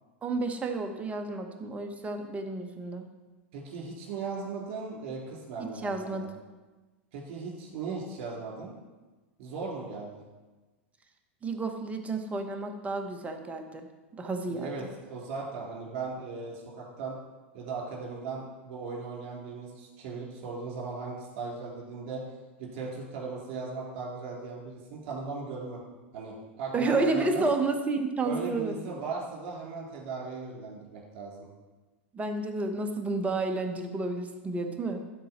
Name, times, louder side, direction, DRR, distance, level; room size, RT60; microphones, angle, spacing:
voice 1, 0.2-3.0 5.6-6.3 11.4-13.9 14.1-14.7 26.7-28.7 32.1-35.0, right 3 dB, 20° right, 6 dB, 1.0 m, -31 dB
voice 2, 3.5-6.3 7.1-8.7 9.4-10.2 14.5-17.2 17.5-22.2 22.6-25.8 26.1-27.4 28.2-31.5, right 4 dB, 60° right, -2 dB, 3.0 m, -37 dB
12.5 x 4.2 x 4.3 m, 1.2 s
hypercardioid pair, 100°, 7 cm